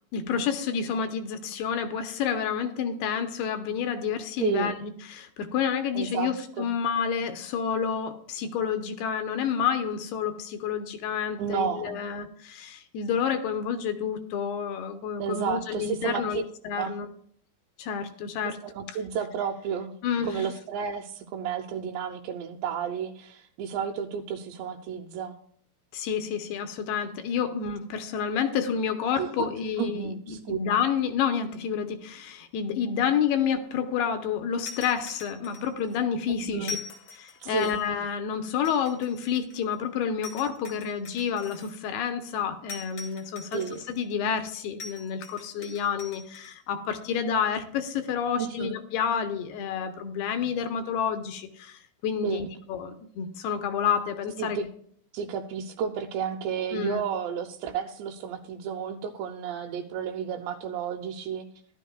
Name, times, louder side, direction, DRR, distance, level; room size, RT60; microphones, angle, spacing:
voice 1, 0.1-17.1 17.8-18.6 20.0-20.5 25.9-36.8 37.1-43.6 43.9-54.6 56.7-57.0, left 7 dB, 75° left, 7 dB, 2.6 m, -29 dB
voice 2, 4.4-4.7 5.9-6.7 11.4-12.0 15.2-16.4 16.7-17.0 18.4-19.9 20.2-25.4 29.2-29.5 29.8-30.6 36.4-36.7 37.4-37.7 43.5-43.9 48.4-48.8 52.2-52.5 54.4-54.7 55.1-61.5, right 7 dB, 85° right, 1 dB, 2.9 m, -32 dB
sound 1, 34.6-36.0 36.6-38.0 38.6-39.7 40.2-41.7 42.7-44.0 44.8-46.5, left 4 dB, 45° left, 1.6 m, -43 dB
15.0 x 12.0 x 2.3 m, 0.62 s
omnidirectional pair, 5.0 m